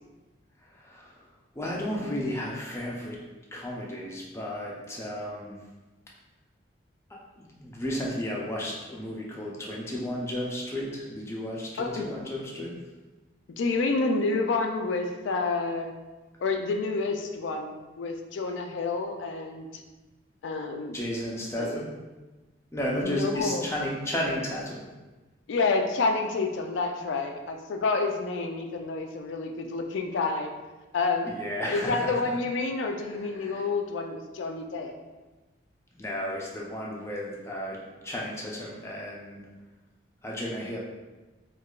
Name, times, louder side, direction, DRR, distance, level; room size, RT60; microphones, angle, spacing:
voice 1, 0.6-1.2 1.5-3.2 3.5-5.6 7.4-12.8 20.9-21.9 22.7-24.9 31.2-32.3 33.0-33.6 35.9-39.4 40.2-40.8, left 1 dB, 15° left, -3 dB, 0.4 m, -33 dB
voice 2, 13.6-15.9 16.4-19.8 20.4-21.0 21.6-21.7 23.0-23.6 25.5-30.5 30.9-31.3 31.7-34.9, left 3 dB, 85° left, 4 dB, 0.4 m, -29 dB
4.6 x 2.3 x 2.3 m, 1.2 s
head